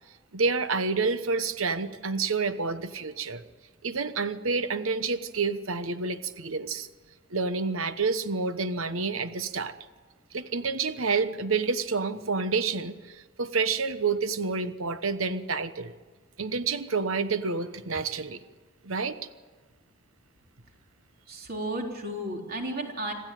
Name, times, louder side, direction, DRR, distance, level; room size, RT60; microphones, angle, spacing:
voice 1, 0.3-3.4 3.8-6.9 7.3-9.7 10.3-15.9 16.4-18.4 18.8-19.1, right 4 dB, 80° right, 11 dB, 1.2 m, -29 dB
voice 2, 21.3-23.1, right 1 dB, 45° right, 1 dB, 3.9 m, -33 dB
27.0 x 15.5 x 9.3 m, 1.3 s
head